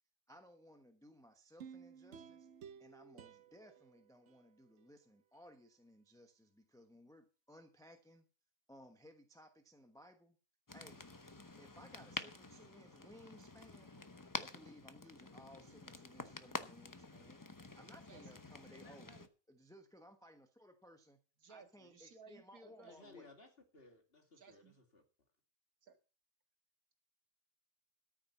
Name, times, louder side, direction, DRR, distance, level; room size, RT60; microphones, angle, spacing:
voice 1, 0.3-2.5 2.8-8.3 8.7-10.4 10.7-11.0 11.6-13.9 14.4-17.5 17.7-19.1 19.5-21.2 21.5-23.3, equal, 5° left, 6 dB, 1.0 m, -60 dB
sound 1, 1.6-4.9 5.3-5.4, right 7 dB, 60° right, 1.0 m, -56 dB
sound 2, 10.7-19.3, left 3 dB, 20° left, 0.6 m, -49 dB
voice 2, 18.7-19.3 22.8-25.0, left 3 dB, 40° left, 3 dB, 2.5 m, -60 dB
voice 3, 21.4-23.1 24.4-24.7 25.8-26.0, right 4 dB, 75° right, 7 dB, 2.2 m, -59 dB
13.5 x 6.1 x 7.1 m, 0.35 s
omnidirectional pair, 1.5 m